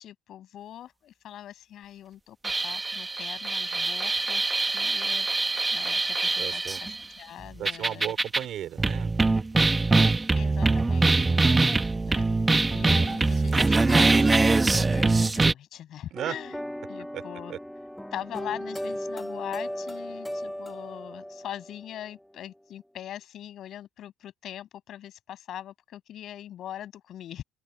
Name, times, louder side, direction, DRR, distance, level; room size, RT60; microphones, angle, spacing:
voice 1, 0.0-8.1 10.3-11.7 12.0-16.6 16.9-17.5 18.1-27.4, left 11 dB, 60° left, 8.0 m, -42 dB
sound 1, 2.4-7.0 7.7-8.4 8.8-15.5, right 3 dB, 20° right, 1.4 m, -23 dB
voice 2, 6.4-6.8 7.6-9.3 11.1-11.5 16.1-16.4 17.1-17.2 17.5-17.6, right 11 dB, 60° right, 4.3 m, -36 dB
sound 2, 16.2-22.1, equal, 5° left, 1.0 m, -37 dB
supercardioid pair, 80°, 0 cm